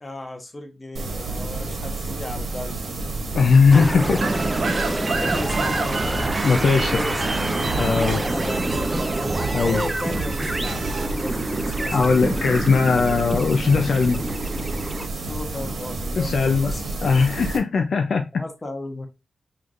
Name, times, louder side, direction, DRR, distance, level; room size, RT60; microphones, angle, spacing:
voice 1, 0.0-2.9 4.1-4.3 5.0-6.5 6.7-7.4 7.9-9.0 9.6-12.6 15.2-17.1 18.3-19.1, left 2 dB, 25° left, 1.1 m, -35 dB
sound 1, 0.9-17.6, right 2 dB, 80° right, 1.3 m, -30 dB
voice 2, 3.3-4.2 6.4-7.0 7.7-8.2 9.5-9.8 11.9-14.2 16.2-16.7 17.0-18.3, left 5 dB, 65° left, 0.5 m, -19 dB
sound 2, 3.7-15.1, right 1 dB, 15° right, 0.4 m, -28 dB
sound 3, 4.2-11.1, right 3 dB, 55° right, 0.9 m, -30 dB
5.8 x 3.3 x 2.5 m
wide cardioid pair, 140°, 0 cm